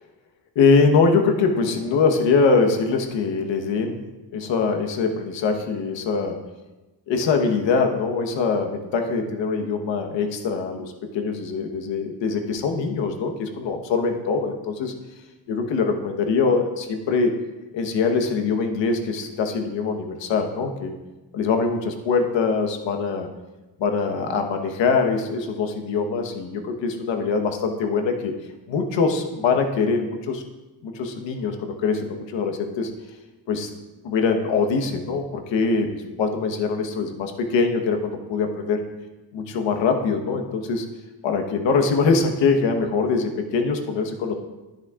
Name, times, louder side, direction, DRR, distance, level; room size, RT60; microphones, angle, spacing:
voice 1, 0.5-4.0 4.3-6.4 7.1-14.9 15.5-17.4 17.7-20.9 21.3-23.3 23.8-28.4 28.7-30.4 30.8-32.9 33.5-33.7 34.0-38.8 39.3-40.8 41.2-44.3, left 4 dB, 90° left, 5 dB, 1.2 m, -23 dB
10.5 x 10.5 x 2.4 m, 1.1 s
cardioid pair, 120°, 44 cm